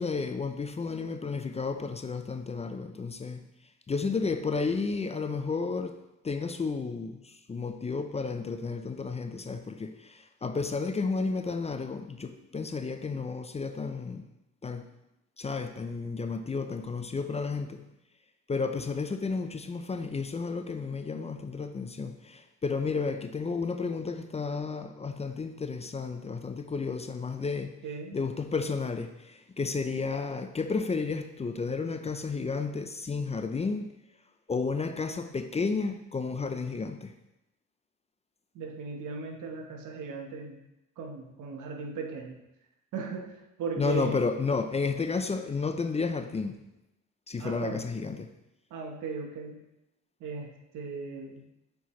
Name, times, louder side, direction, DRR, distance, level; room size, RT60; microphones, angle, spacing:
voice 1, 0.0-3.4 3.9-14.3 14.6-14.9 15.4-17.9 18.5-27.8 28.1-34.0 34.5-37.1 43.8-46.6 47.3-48.3, left 4 dB, 20° left, 0.4 m, -32 dB
voice 2, 27.8-28.2 38.5-40.6 41.0-42.4 42.9-44.2 47.4-47.8 48.7-49.6 50.2-51.4, right 4 dB, 85° right, 1.0 m, -37 dB
7.0 x 4.6 x 3.1 m
cardioid pair, 90°, 30 cm